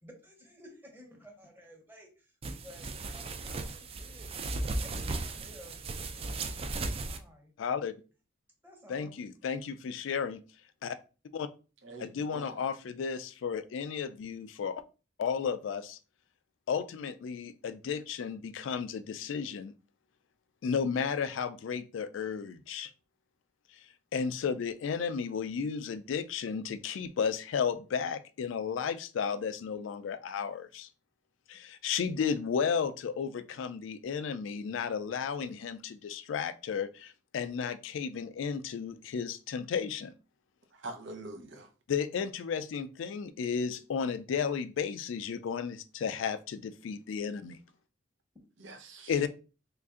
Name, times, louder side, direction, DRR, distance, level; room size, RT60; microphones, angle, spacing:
voice 1, 0.0-2.4 2.6-7.5 8.6-9.1 49.1-49.3, equal, 10° right, 1.0 m, -54 dB
sound 1, 2.4-7.2, right 2 dB, 30° right, 0.4 m, -36 dB
voice 2, 7.6-7.9 8.9-10.4 10.8-11.0 11.3-11.5 12.0-14.8 15.2-16.0 16.7-19.7 20.6-22.9 24.1-30.9 31.5-40.1 41.9-47.6 49.1-49.3, left 6 dB, 75° left, 0.3 m, -33 dB
voice 3, 11.8-12.6 40.7-41.7 48.6-49.2, right 2 dB, 70° right, 0.7 m, -45 dB
3.2 x 2.6 x 3.6 m
head